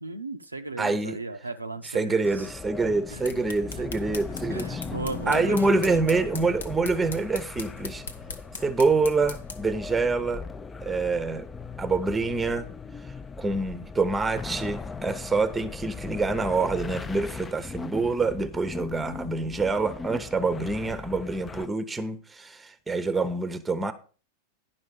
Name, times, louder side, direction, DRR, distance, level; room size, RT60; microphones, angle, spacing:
voice 1, 0.0-2.5 3.1-3.4 3.8-3.9 4.5-6.1, right 3 dB, 80° right, 0.6 m, -36 dB
voice 2, 0.8-1.2 1.9-4.8 5.3-8.0 8.6-10.4 10.8-11.5 11.8-12.7 13.4-23.9, right 3 dB, 10° right, 0.8 m, -26 dB
sound 1, 2.2-21.7, left 4 dB, 15° left, 0.4 m, -39 dB
sound 2, 3.0-9.7, left 5 dB, 70° left, 0.8 m, -41 dB
10.5 x 5.6 x 5.2 m
figure-of-eight pair, 90°, 0 cm